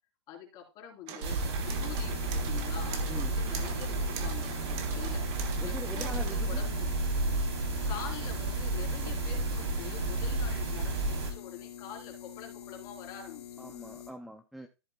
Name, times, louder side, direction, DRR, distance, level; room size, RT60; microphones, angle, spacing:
voice 1, 0.3-5.2 5.6-6.9 7.9-13.7, left 8 dB, 30° left, 0 dB, 3.7 m, -45 dB
sound 1, 1.1-6.4, right 8 dB, 35° right, 1.4 m, -43 dB
sound 2, 1.2-11.3, right 2 dB, 70° right, 3.3 m, -32 dB
sound 3, 1.6-14.1, left 10 dB, 75° left, 2.6 m, -46 dB
voice 2, 3.1-3.4 5.6-6.6 13.6-14.7, equal, ahead, 7 dB, 0.4 m, -42 dB
14.0 x 7.7 x 2.2 m, 0.28 s
hypercardioid pair, 150°, 14 cm